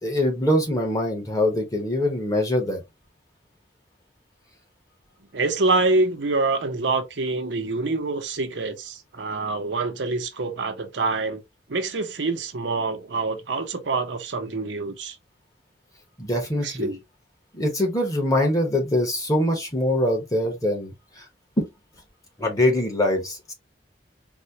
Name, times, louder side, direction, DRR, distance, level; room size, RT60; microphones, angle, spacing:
voice 1, 0.0-2.8 16.2-16.9 17.5-20.9 21.2-21.3 21.6-21.7 22.4-23.5, left 1 dB, 20° left, 1.1 m, -23 dB
voice 2, 5.3-11.4 11.7-15.2 16.6-17.0, right 3 dB, 80° right, 0.7 m, -26 dB
4.1 x 2.2 x 2.8 m
head